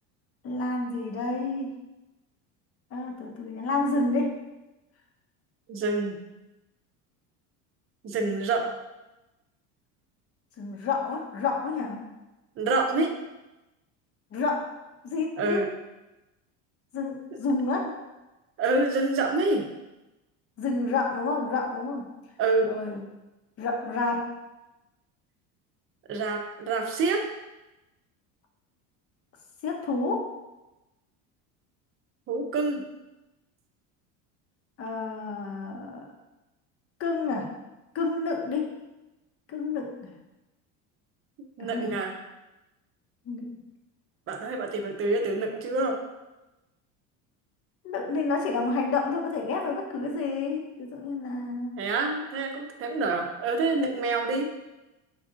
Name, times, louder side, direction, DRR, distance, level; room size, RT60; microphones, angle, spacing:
voice 1, 0.4-1.7 2.9-4.4 10.6-12.1 14.3-14.8 15.0-15.6 16.9-18.0 20.6-22.1 22.6-23.0 23.6-24.3 29.6-30.4 34.8-36.1 37.0-37.5 37.9-38.8 39.5-40.1 41.6-41.9 43.3-43.5 47.8-51.7, left 3 dB, 40° left, 2 dB, 0.8 m, -29 dB
voice 2, 5.7-6.2 8.0-8.7 12.6-13.1 15.4-15.7 18.6-19.6 22.4-22.7 26.1-27.2 32.3-32.8 41.6-42.1 44.3-46.0 51.8-54.5, right 3 dB, 35° right, 4 dB, 0.7 m, -27 dB
5.2 x 2.5 x 3.7 m, 1.0 s
supercardioid pair, 115°, 37 cm